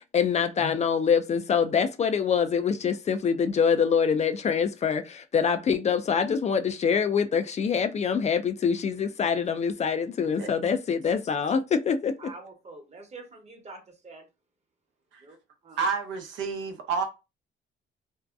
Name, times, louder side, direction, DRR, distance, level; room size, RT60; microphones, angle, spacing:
voice 1, 0.0-12.2, left 6 dB, 35° left, 0.4 m, -25 dB
voice 2, 12.2-14.2 15.2-15.4 15.6-15.8, right 3 dB, 35° right, 1.0 m, -45 dB
voice 3, 15.8-17.0, right 5 dB, 85° right, 0.7 m, -29 dB
2.6 x 2.1 x 2.3 m
cardioid pair, 80°, 19 cm